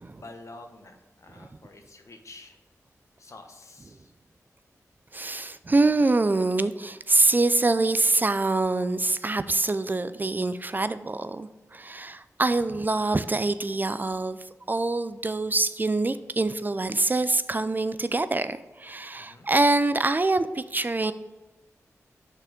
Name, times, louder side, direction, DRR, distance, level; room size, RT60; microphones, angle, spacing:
voice 1, 0.1-2.6 3.2-4.1 19.2-19.5, left 2 dB, 60° left, 5 dB, 0.9 m, -48 dB
voice 2, 5.1-14.4 14.7-21.1, right 2 dB, 30° right, 13 dB, 0.3 m, -25 dB
6.0 x 4.3 x 5.1 m, 1.2 s
cardioid pair, 50°, 6 cm